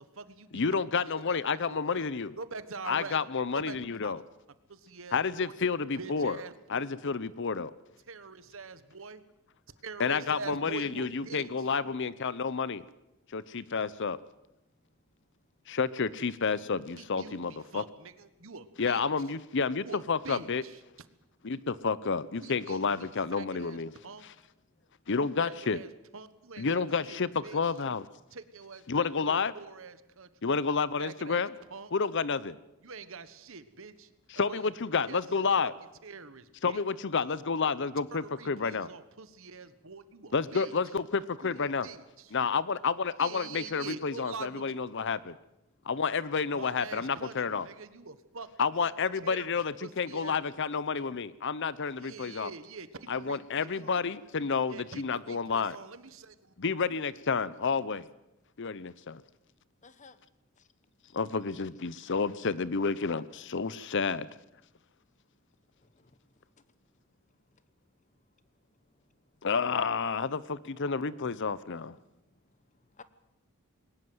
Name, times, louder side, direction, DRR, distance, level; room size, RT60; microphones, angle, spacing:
voice 1, 0.0-0.6 0.9-1.4 1.7-2.0 2.4-3.2 3.5-3.8 4.0-4.1 4.7-5.6 6.0-6.9 8.1-9.2 9.8-11.5 17.0-17.4 17.7-19.0 19.9-20.8 22.4-23.1 23.3-24.2 25.4-27.6 28.3-30.3 31.0-31.4 31.7-31.9 32.8-34.6 35.1-35.2 36.0-36.8 38.1-40.7 41.4-42.3 43.2-44.8 46.5-48.5 48.8-48.9 49.2-49.5 49.8-50.4 52.0-53.9 54.7-56.5, right 4 dB, 65° right, 13 dB, 1.3 m, -45 dB
voice 2, 0.5-2.3 2.9-4.2 5.1-6.4 6.7-7.7 10.0-12.8 13.3-14.2 15.7-17.8 18.8-20.6 21.4-23.9 24.2-24.3 25.1-25.8 26.6-28.1 28.9-29.5 30.4-31.5 31.9-32.6 34.3-35.7 36.6-38.9 40.3-41.9 42.3-45.4 45.8-47.7 48.6-52.5 53.1-55.8 56.6-58.1 58.6-59.2 61.1-64.3 69.4-72.0, left 5 dB, 55° left, 18 dB, 0.7 m, -30 dB
voice 3, 14.8-15.3 15.6-15.8 24.6-25.1 30.2-30.4 37.8-37.9 39.6-39.8 46.4-46.5 59.8-60.2 60.6-60.7 62.0-62.1 65.7-69.5 71.9-73.0, left 4 dB, 35° left, 14 dB, 1.1 m, -62 dB
21.5 x 19.0 x 7.9 m, 0.89 s
head